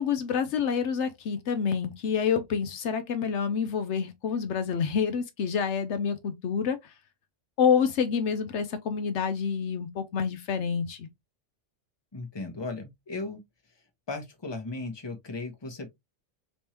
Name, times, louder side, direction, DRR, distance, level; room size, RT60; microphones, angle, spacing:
voice 1, 0.0-6.9 7.6-11.1, left 7 dB, 75° left, 0.9 m, -28 dB
voice 2, 12.1-13.4 14.1-15.9, left 3 dB, 25° left, 0.9 m, -36 dB
3.5 x 3.0 x 2.9 m
omnidirectional pair, 1.2 m